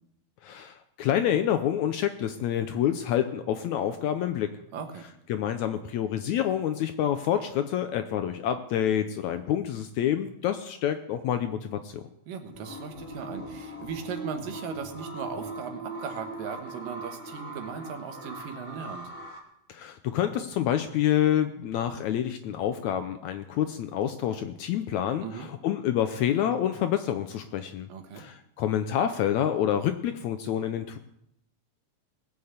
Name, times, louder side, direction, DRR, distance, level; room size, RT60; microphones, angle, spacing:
voice 1, 0.4-4.5 5.3-12.0 19.7-27.9 28.2-31.0, left 10 dB, 75° left, 9 dB, 1.8 m, -27 dB
voice 2, 4.7-5.1 12.3-19.1 25.2-25.5 27.9-28.3, right 6 dB, 80° right, 6 dB, 3.0 m, -38 dB
sound 1, 12.5-19.4, right 1 dB, 10° left, 1.8 m, -40 dB
19.5 x 6.8 x 8.0 m, 0.79 s
omnidirectional pair, 3.9 m